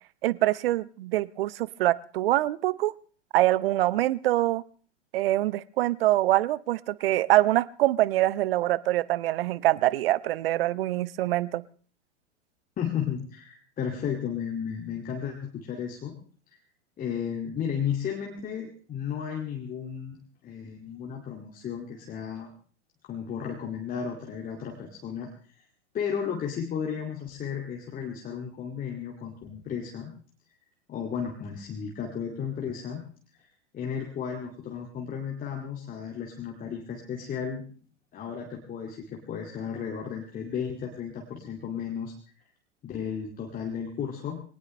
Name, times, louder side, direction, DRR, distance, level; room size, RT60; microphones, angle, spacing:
voice 1, 0.2-2.9 3.3-4.6 5.1-11.6, right 15 dB, 50° right, 21 dB, 0.7 m, -24 dB
voice 2, 12.8-16.2 17.0-22.5 23.0-25.6 25.9-30.1 30.9-33.0 33.7-37.6 38.1-42.1 42.8-44.4, left 7 dB, 25° left, 0 dB, 2.3 m, -34 dB
21.0 x 18.5 x 3.3 m, 0.42 s
figure-of-eight pair, 95°, 36 cm